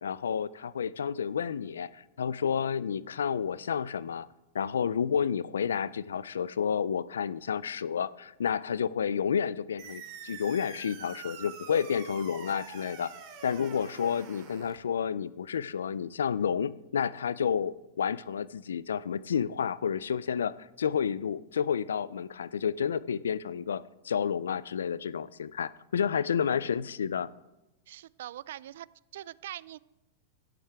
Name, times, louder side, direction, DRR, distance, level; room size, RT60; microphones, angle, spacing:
voice 1, 0.0-4.3 4.5-13.1 13.4-27.3, left 7 dB, 90° left, 19 dB, 0.4 m, -30 dB
sound 1, 9.8-14.8, right 7 dB, 45° right, 2.3 m, -46 dB
voice 2, 26.1-26.6 27.9-28.9 29.1-29.8, right 13 dB, 70° right, 22 dB, 0.3 m, -43 dB
13.0 x 10.5 x 3.5 m, 0.96 s
hypercardioid pair, 120°, 0 cm